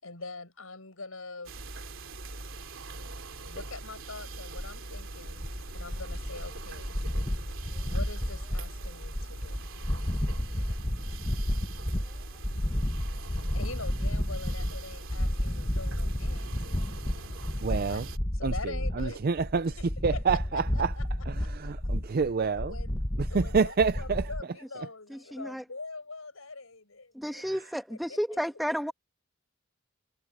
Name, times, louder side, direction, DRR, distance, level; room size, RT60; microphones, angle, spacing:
voice 1, 0.0-1.6 3.4-7.0 7.8-9.7 12.4-12.5 13.5-16.6 17.9-18.1 18.3-19.2 19.6-19.9 20.1-20.6 21.0-21.1 21.4-21.9 22.5-23.0 23.3-27.5 27.9-28.4, left 3 dB, 85° left, 6.2 m, -43 dB
sound 1, 1.4-18.2, right 2 dB, 65° right, 3.1 m, -42 dB
sound 2, 4.6-24.4, left 1 dB, 20° left, 1.2 m, -32 dB
voice 2, 17.6-18.1 18.4-19.8 20.0-20.9 21.3-22.7 23.2-24.3 27.4-27.6, right 5 dB, 45° right, 0.5 m, -28 dB
voice 3, 25.3-25.6 27.1-28.9, equal, ahead, 1.5 m, -32 dB
head